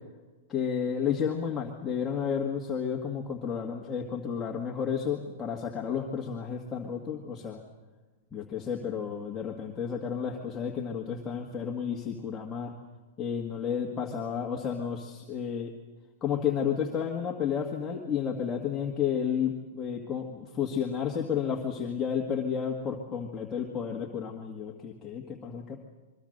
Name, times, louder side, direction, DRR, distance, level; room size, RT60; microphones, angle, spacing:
voice 1, 0.5-7.6 8.3-12.7 13.2-15.7 16.2-25.8, left 7 dB, 15° left, -1 dB, 1.9 m, -31 dB
25.0 x 23.0 x 6.6 m, 1.3 s
supercardioid pair, 155°, 0 cm